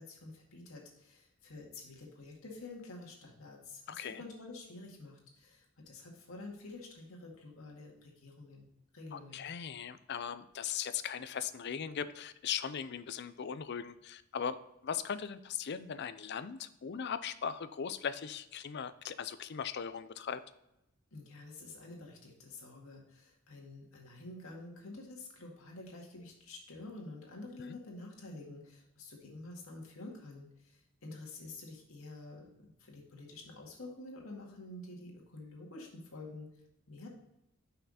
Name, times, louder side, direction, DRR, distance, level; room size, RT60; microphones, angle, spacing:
voice 1, 0.0-8.7 8.9-9.4 21.1-36.5 36.9-37.1, left 2 dB, 90° left, -1 dB, 2.0 m, -49 dB
voice 2, 3.9-4.2 9.1-14.6 14.8-20.4 27.6-27.8, left 7 dB, 55° left, 13 dB, 0.5 m, -39 dB
5.8 x 5.7 x 4.1 m, 0.85 s
head